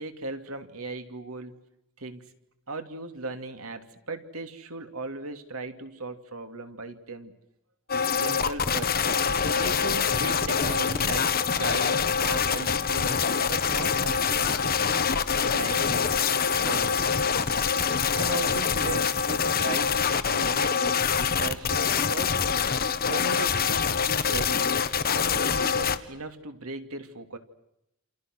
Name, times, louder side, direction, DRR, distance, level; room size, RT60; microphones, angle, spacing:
voice 1, 0.0-1.5 2.0-2.3 2.7-7.3 8.1-9.0 9.5-13.2 13.5-14.5 14.9-16.0 16.6-17.1 18.1-22.4 23.0-24.7 25.1-27.4, right 3 dB, 80° right, 7 dB, 2.9 m, -37 dB
sound 1, 7.9-26.0, left 6 dB, 45° left, 1.5 m, -25 dB
28.5 x 28.5 x 6.4 m, 0.84 s
head